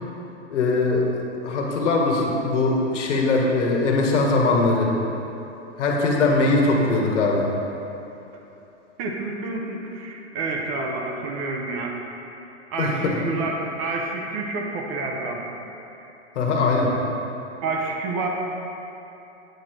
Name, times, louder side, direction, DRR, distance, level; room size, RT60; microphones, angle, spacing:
voice 1, 0.5-1.0 1.4-4.9 5.8-7.5 12.8-13.2 16.3-16.9, left 3 dB, 80° left, -1 dB, 1.6 m, -21 dB
voice 2, 9.0-12.0 12.7-15.5 17.6-18.3, right 3 dB, 30° right, 0 dB, 0.7 m, -28 dB
8.9 x 4.7 x 5.1 m, 3.0 s
hypercardioid pair, 155°, 36 cm